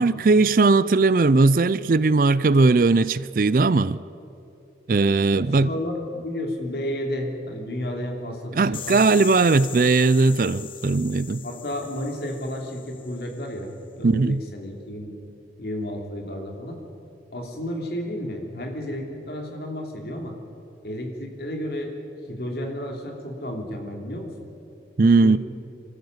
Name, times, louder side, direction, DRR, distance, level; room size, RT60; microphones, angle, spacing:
voice 1, 0.0-4.0 4.9-5.7 8.5-11.4 14.0-14.4 25.0-25.4, right 3 dB, 50° right, 0.4 m, -18 dB
voice 2, 5.3-9.0 11.4-15.1 15.6-16.8 17.3-20.4 20.8-21.9 22.3-24.3 25.2-25.4, left 1 dB, 60° left, 3.1 m, -32 dB
sound 1, 8.7-13.5, left 10 dB, 30° left, 0.5 m, -39 dB
25.5 x 13.5 x 8.0 m
head